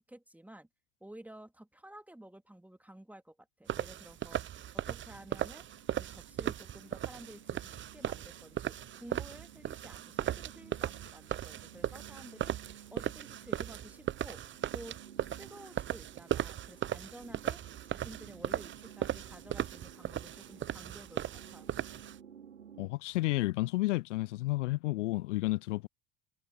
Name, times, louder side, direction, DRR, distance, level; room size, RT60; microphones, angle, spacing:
voice 1, 0.1-0.7 1.0-4.4 4.7-5.7 5.9-15.0 15.4-21.7, right 1 dB, 5° right, 2.9 m, -52 dB
sound 1, 3.7-22.2, right 11 dB, 30° right, 0.8 m, -37 dB
sound 2, 4.0-22.9, right 8 dB, 85° right, 2.7 m, -55 dB
voice 2, 22.8-25.9, left 19 dB, 75° left, 0.5 m, -31 dB
figure-of-eight pair, 65°, 37 cm